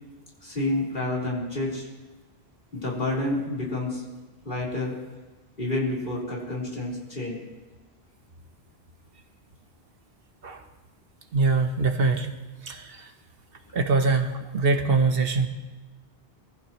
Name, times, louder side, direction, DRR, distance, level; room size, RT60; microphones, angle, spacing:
voice 1, 0.4-1.9 2.7-4.0 4.4-4.9 5.6-7.4, left 2 dB, 50° left, -4 dB, 4.2 m, -29 dB
voice 2, 11.3-12.3 12.6-13.1 13.7-15.5, right 4 dB, 65° right, 6 dB, 1.2 m, -23 dB
23.0 x 15.0 x 3.1 m, 1.2 s
omnidirectional pair, 1.1 m